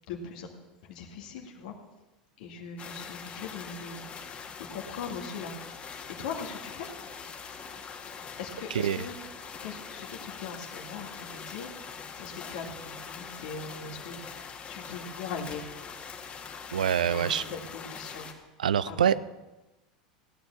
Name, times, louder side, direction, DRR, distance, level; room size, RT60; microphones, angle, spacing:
voice 1, 0.1-0.5 0.8-1.7 2.4-5.5 6.1-6.9 8.4-9.2 9.6-15.7 17.1-18.3 18.8-19.1, left 5 dB, 70° left, 2 dB, 2.1 m, -40 dB
sound 1, 2.8-18.3, left 6 dB, 30° left, 2.1 m, -43 dB
voice 2, 16.7-17.4 18.6-19.3, right 9 dB, 85° right, 18 dB, 0.5 m, -25 dB
16.0 x 9.2 x 7.1 m, 1.0 s
hypercardioid pair, 90°, 4 cm